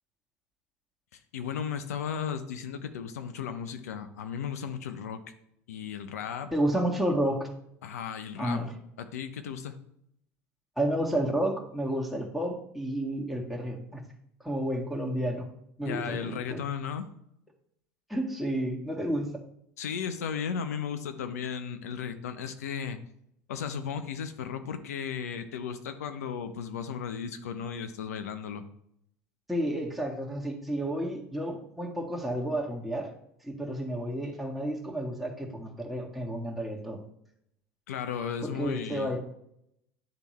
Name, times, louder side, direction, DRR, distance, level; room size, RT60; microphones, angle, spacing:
voice 1, 1.1-5.2 5.7-6.5 7.8-8.6 9.0-9.8 15.8-17.1 19.8-23.0 23.5-28.6 37.9-39.2, left 7 dB, 85° left, 10 dB, 0.7 m, -35 dB
voice 2, 6.5-7.5 8.4-8.7 10.8-14.0 14.4-15.4 15.8-16.6 18.1-19.3 29.5-33.1 33.4-37.0 38.4-39.2, right 1 dB, ahead, -2 dB, 1.6 m, -31 dB
10.0 x 3.5 x 3.1 m, 0.73 s
hypercardioid pair, 85°, 8 cm